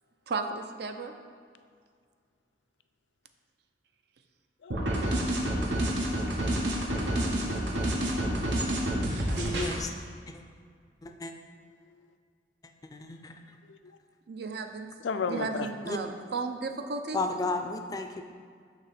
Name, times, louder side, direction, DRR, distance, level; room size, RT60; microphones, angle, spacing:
voice 1, 0.3-1.1 14.3-14.9 15.3-17.2, right 4 dB, 65° right, 6 dB, 0.5 m, -34 dB
voice 2, 4.6-4.9 6.1-7.0 7.2-7.5 13.7-13.8 15.0-15.7, left 5 dB, 85° left, 9 dB, 0.4 m, -35 dB
sound 1, 4.7-9.8, right 1 dB, 80° right, 1.0 m, -28 dB
voice 3, 9.3-9.9 10.3-10.4 11.0-11.3 12.8-13.4 15.8-16.0 17.1-18.2, left 2 dB, 20° left, 5 dB, 0.4 m, -33 dB
6.5 x 3.0 x 5.8 m, 2.1 s
head